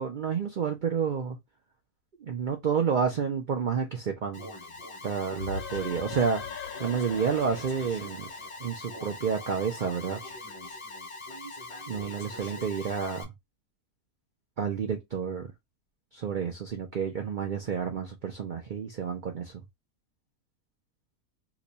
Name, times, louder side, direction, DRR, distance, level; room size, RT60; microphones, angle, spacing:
voice 1, 0.0-1.4 2.2-4.5 5.0-6.4 6.8-8.3 8.6-10.2 11.9-13.3 14.6-15.5 16.1-19.5, right 6 dB, 65° right, 0.4 m, -30 dB
Alarm, 4.3-13.2, left 2 dB, 40° left, 0.4 m, -42 dB
sound 1, 5.4-8.9, left 6 dB, 80° left, 1.1 m, -40 dB
3.0 x 2.3 x 3.9 m
omnidirectional pair, 1.6 m